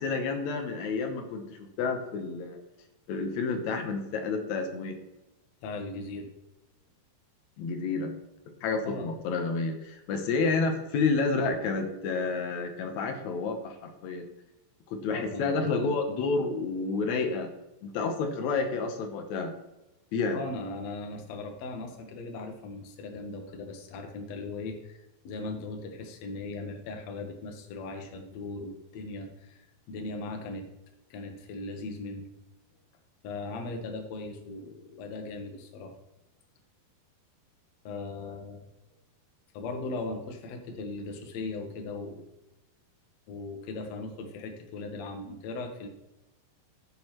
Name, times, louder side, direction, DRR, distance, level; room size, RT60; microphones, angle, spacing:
voice 1, 0.0-2.6 3.1-5.0 7.6-8.1 8.6-14.3 14.9-17.5 17.8-19.5 20.1-20.4, left 4 dB, 90° left, 4 dB, 1.6 m, -30 dB
voice 2, 5.6-6.3 8.8-9.1 15.1-15.6 20.3-29.6 29.9-30.7 31.1-32.3 33.2-35.9 37.8-38.6 39.5-42.3 43.3-45.9, left 3 dB, 70° left, 4 dB, 1.7 m, -38 dB
15.5 x 5.4 x 3.0 m, 0.96 s
omnidirectional pair, 4.7 m